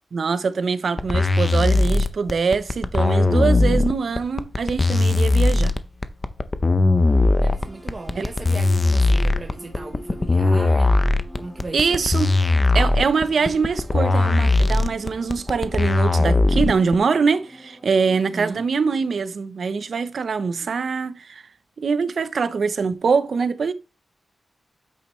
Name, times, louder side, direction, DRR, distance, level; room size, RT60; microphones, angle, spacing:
voice 1, 0.1-5.8 8.2-8.3 11.7-12.3 12.7-21.4 21.8-23.7, right 5 dB, 60° right, 0.6 m, -23 dB
sound 1, 1.0-17.0, left 2 dB, 25° left, 0.5 m, -19 dB
sound 2, 7.0-18.5, equal, 5° right, 1.5 m, -44 dB
voice 2, 7.4-10.9 11.3-12.0 18.1-18.7, right 3 dB, 30° right, 0.8 m, -36 dB
8.5 x 6.2 x 3.1 m
wide cardioid pair, 155°, 0 cm